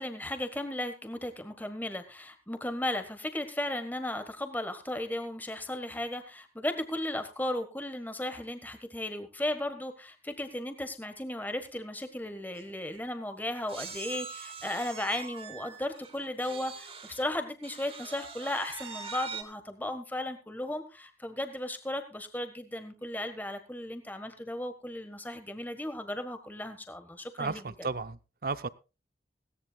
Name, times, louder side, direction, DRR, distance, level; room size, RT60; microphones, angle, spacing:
voice 1, 0.0-27.6, left 1 dB, 10° left, 8 dB, 1.4 m, -35 dB
sound 1, 12.3-12.4 12.6-12.7 13.7-17.3 17.6-19.4, right 5 dB, 30° right, 3.3 m, -43 dB
Meow, 18.4-19.2, right 3 dB, 15° right, 0.9 m, -51 dB
voice 2, 27.4-28.7, right 4 dB, 50° right, 14 dB, 0.7 m, -34 dB
17.5 x 17.0 x 2.3 m, 0.29 s
head